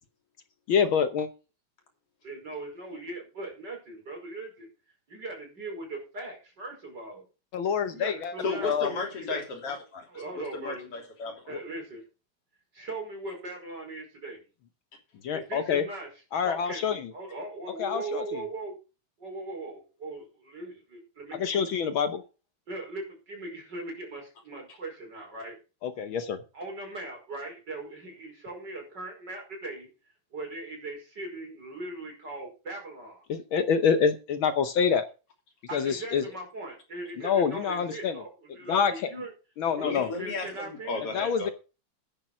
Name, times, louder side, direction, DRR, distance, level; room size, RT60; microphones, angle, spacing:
voice 1, 0.7-1.3 7.5-8.3 8.6-8.9 11.5-11.6 15.2-15.8 16.3-17.1 17.8-18.4 21.4-22.2 25.8-26.4 33.3-35.1 35.7-36.2 37.2-38.2 38.7-39.1 39.6-40.1 41.1-41.5, left 6 dB, 70° left, 10 dB, 1.2 m, -26 dB
voice 2, 2.2-4.7 5.1-7.2 7.8-9.5 10.1-10.9 11.5-12.0 12.7-14.4 15.3-16.1 16.4-18.7 19.2-21.6 22.7-25.6 26.5-29.9 30.3-33.2 35.7-39.3 39.8-41.0, right 2 dB, 35° right, 1 dB, 5.7 m, -39 dB
voice 3, 8.4-10.1 10.4-11.6 39.8-41.5, left 3 dB, 50° left, 3 dB, 3.9 m, -34 dB
10.5 x 8.7 x 6.2 m, 0.33 s
omnidirectional pair, 3.3 m